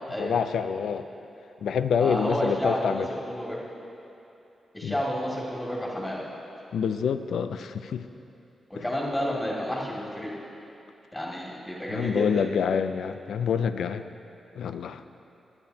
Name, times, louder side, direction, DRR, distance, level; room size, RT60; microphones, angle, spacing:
voice 1, 0.2-1.1 1.6-3.1 4.8-5.0 6.7-8.1 8.8-8.9 11.9-14.0 14.6-15.2, left 7 dB, 90° left, 11 dB, 0.4 m, -27 dB
voice 2, 2.0-3.6 4.7-6.2 8.7-10.3 11.1-12.4, equal, 20° left, -5 dB, 2.3 m, -30 dB
23.0 x 8.7 x 2.8 m, 2.8 s
cardioid pair, 85°, 0 cm